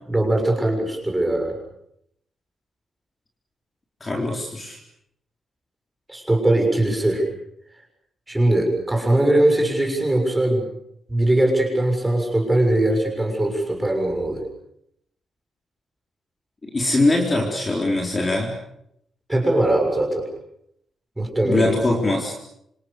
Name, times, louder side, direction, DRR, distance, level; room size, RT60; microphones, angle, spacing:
voice 1, 0.1-1.6 6.1-7.3 8.3-10.7 11.1-14.4 19.3-20.3 21.2-21.7, right 1 dB, 10° right, 3 dB, 6.8 m, -20 dB
voice 2, 4.0-4.8 16.7-18.5 21.4-22.3, left 2 dB, 20° left, 0 dB, 4.0 m, -22 dB
27.5 x 26.5 x 6.8 m, 0.75 s
wide cardioid pair, 175°, 0 cm